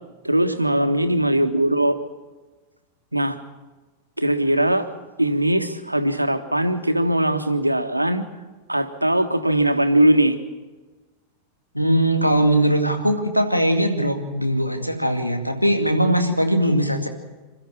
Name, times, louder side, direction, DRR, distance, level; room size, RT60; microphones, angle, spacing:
voice 1, 0.2-2.0 3.1-3.4 4.2-4.9 5.2-8.2 8.7-10.4, right 1 dB, 85° right, 7 dB, 1.5 m, -20 dB
voice 2, 11.7-17.1, right 1 dB, 90° left, 4 dB, 2.2 m, -20 dB
28.0 x 13.5 x 7.3 m, 1.2 s
figure-of-eight pair, 90°, 0 cm